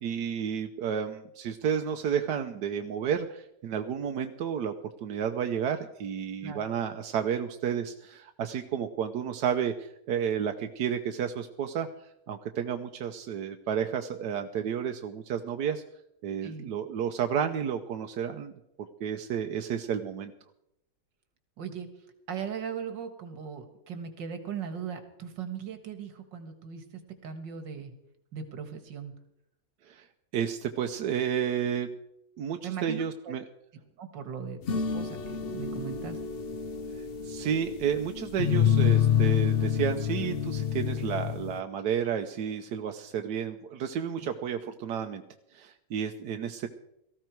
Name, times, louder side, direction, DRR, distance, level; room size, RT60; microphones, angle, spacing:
voice 1, 0.0-4.7 5.0-15.8 16.2-18.5 19.0-20.3 29.8-30.0 30.3-31.9 32.4-33.4 36.9-45.2 45.5-46.7, right 8 dB, 70° right, 5 dB, 1.3 m, -31 dB
voice 2, 21.6-21.9 22.3-27.9 28.3-29.1 32.6-33.3 34.0-36.2, right 7 dB, 90° right, 8 dB, 2.3 m, -39 dB
sound 1, 34.7-41.6, left 8 dB, 50° left, 0.7 m, -28 dB
18.0 x 14.5 x 4.6 m, 0.81 s
omnidirectional pair, 1.9 m